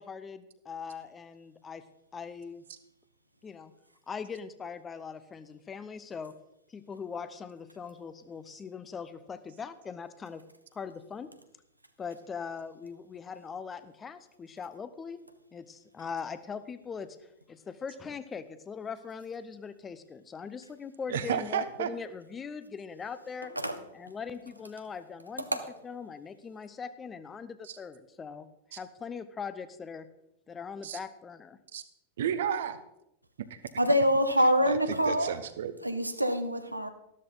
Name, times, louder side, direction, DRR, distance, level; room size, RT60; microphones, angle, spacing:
voice 1, 0.0-1.8 2.1-2.6 3.4-3.7 4.1-6.3 6.7-10.4 10.7-11.3 12.0-15.2 15.5-23.5 23.9-25.5 25.8-30.1 30.5-31.6, left 6 dB, 20° left, 13 dB, 0.8 m, -41 dB
voice 2, 21.1-21.9 27.6-27.8 28.7-28.8 30.8-31.0 31.7-31.8 32.2-32.8 33.5-33.6 34.7-35.7, right 9 dB, 60° right, 12 dB, 1.0 m, -32 dB
voice 3, 33.8-35.4 35.8-36.9, equal, 85° right, 9 dB, 1.0 m, -25 dB
13.0 x 13.0 x 3.9 m, 0.84 s
figure-of-eight pair, 90°, 0 cm